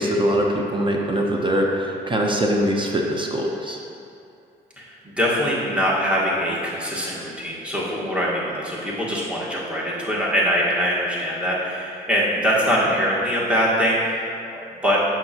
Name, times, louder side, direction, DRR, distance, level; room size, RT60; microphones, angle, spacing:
voice 1, 0.0-3.8, equal, 25° right, 0 dB, 0.8 m, -22 dB
voice 2, 4.8-15.0, equal, 5° right, -6 dB, 1.6 m, -23 dB
7.6 x 5.9 x 2.9 m, 2.5 s
cardioid pair, 90°, 20 cm